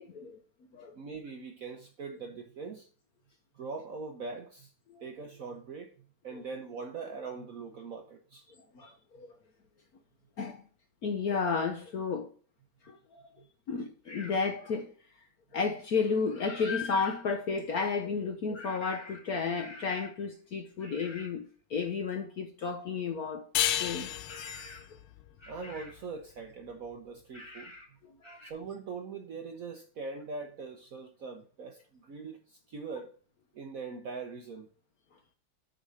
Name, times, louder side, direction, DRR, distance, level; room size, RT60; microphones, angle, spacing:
voice 1, 0.9-2.9 3.5-4.7 5.0-6.0 6.2-8.5 25.5-27.7 28.4-33.1 33.5-34.7, right 4 dB, 60° right, 0.9 m, -42 dB
voice 2, 8.7-9.3 10.4-10.6 11.0-12.3 12.8-13.0 13.7-14.9 15.5-23.5 23.8-24.1 28.0-28.4, left 5 dB, 60° left, 1.0 m, -32 dB
sound 1, 14.1-14.5 18.5-20.3 20.8-21.4 24.3-25.0 25.4-26.1 27.3-27.9 28.2-28.5, left 2 dB, 20° left, 1.0 m, -48 dB
sound 2, 23.5-26.7, left 11 dB, 80° left, 1.5 m, -33 dB
6.5 x 5.1 x 6.3 m
omnidirectional pair, 2.3 m